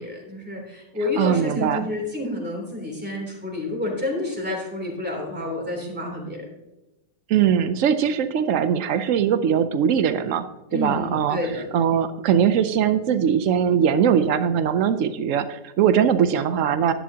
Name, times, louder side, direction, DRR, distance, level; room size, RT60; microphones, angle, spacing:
voice 1, 0.0-6.4 10.7-11.6, left 2 dB, 5° right, -1 dB, 3.0 m, -29 dB
voice 2, 1.2-1.9 7.3-10.5 10.7-11.4 11.7-16.9, right 8 dB, 80° right, 11 dB, 0.7 m, -21 dB
11.0 x 11.0 x 2.8 m, 0.97 s
omnidirectional pair, 2.0 m